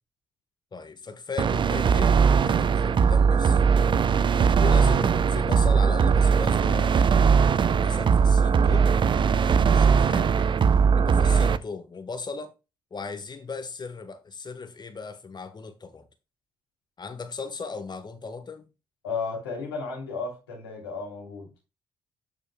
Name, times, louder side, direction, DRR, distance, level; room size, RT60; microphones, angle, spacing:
voice 1, 0.7-3.6 4.6-7.2 7.7-9.0 9.6-10.5 10.9-12.5 12.9-16.1 17.0-18.7, left 4 dB, 35° left, 1.3 m, -37 dB
sound 1, 1.4-11.6, right 6 dB, 40° right, 0.6 m, -20 dB
voice 2, 19.0-21.5, left 4 dB, 85° left, 2.9 m, -33 dB
12.5 x 5.2 x 2.2 m
hypercardioid pair, 45°, 12 cm